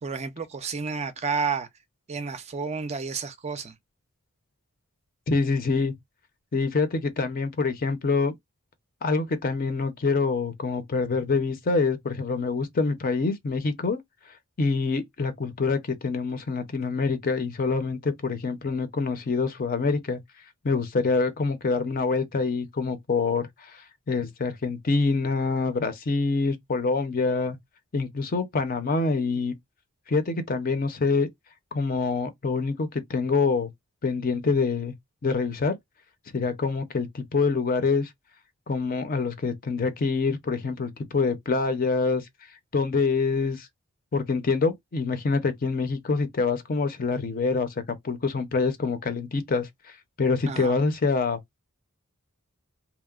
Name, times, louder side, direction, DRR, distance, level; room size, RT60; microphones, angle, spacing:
voice 1, 0.0-1.7 2.1-3.7 50.5-50.8, right 5 dB, 30° right, 0.4 m, -31 dB
voice 2, 5.3-5.9 6.5-8.3 9.0-14.0 14.6-20.2 20.6-23.4 23.7-23.8 24.1-27.6 27.9-29.6 30.1-31.3 31.7-33.7 34.0-34.9 35.2-35.8 36.3-38.1 38.7-42.2 42.7-43.7 44.1-47.7 48.0-49.7 50.2-51.4, left 4 dB, 40° left, 0.5 m, -25 dB
2.8 x 2.0 x 2.3 m
head